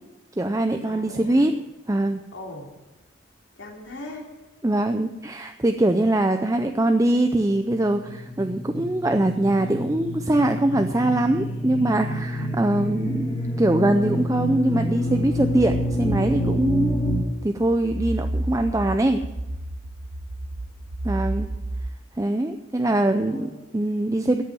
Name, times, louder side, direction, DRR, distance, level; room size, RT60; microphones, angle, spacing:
voice 1, 0.4-1.6 1.9-2.3 4.6-17.0 17.4-19.2 21.0-21.5 22.2-24.4, right 1 dB, 15° right, 7 dB, 0.5 m, -22 dB
voice 2, 0.9-1.5 2.3-2.7 3.6-4.3 22.8-22.9 23.2-23.6, left 1 dB, 70° left, 0 dB, 3.2 m, -39 dB
sound 1, 7.6-17.2, equal, 25° left, 3.2 m, -28 dB
sound 2, 15.1-21.9, right 1 dB, 70° right, 0.9 m, -32 dB
13.5 x 8.3 x 7.8 m, 1.1 s
head